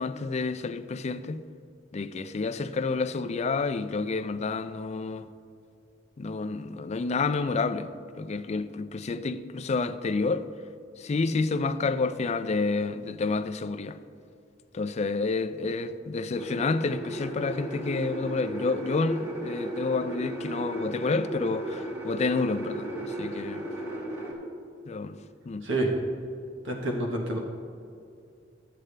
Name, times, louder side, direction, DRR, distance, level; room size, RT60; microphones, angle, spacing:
voice 1, 0.0-1.4 1.9-5.3 6.2-7.9 8.2-10.5 11.0-14.0 14.7-23.6 24.9-25.2 25.5-25.7, left 3 dB, 35° left, 0.4 m, -29 dB
sound 1, 16.4-24.3, right 1 dB, 15° right, 1.9 m, -35 dB
voice 2, 26.6-27.4, right 1 dB, 80° right, 1.3 m, -28 dB
13.0 x 7.7 x 3.3 m
head